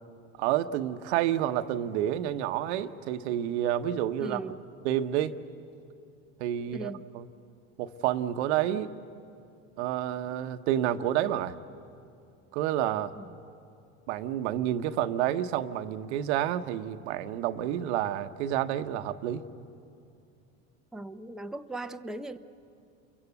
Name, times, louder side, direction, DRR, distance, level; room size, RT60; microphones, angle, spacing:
voice 1, 0.4-4.5 4.8-5.4 6.4-7.3 7.8-8.9 9.8-11.5 12.5-13.1 14.1-19.4, right 11 dB, 75° right, 9 dB, 1.1 m, -29 dB
voice 2, 4.2-4.6 6.6-7.1 13.2-13.4 20.9-22.4, right 2 dB, ahead, 6 dB, 0.8 m, -39 dB
29.0 x 23.0 x 8.3 m, 2.5 s
supercardioid pair, 100°, 34 cm